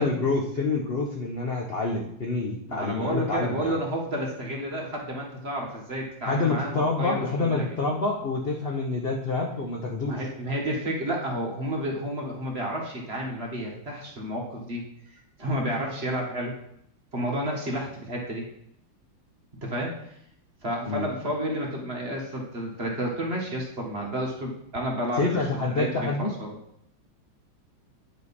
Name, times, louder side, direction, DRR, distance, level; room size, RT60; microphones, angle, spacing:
voice 1, 0.0-3.8 6.3-10.2 20.9-21.1 25.2-26.3, left 3 dB, 65° left, 0 dB, 0.6 m, -27 dB
voice 2, 2.7-7.2 7.6-7.7 10.0-16.5 17.1-18.4 19.6-20.0 20.6-25.4 25.7-26.5, equal, 35° right, -1 dB, 1.4 m, -31 dB
9.1 x 5.3 x 4.1 m, 0.75 s
omnidirectional pair, 2.2 m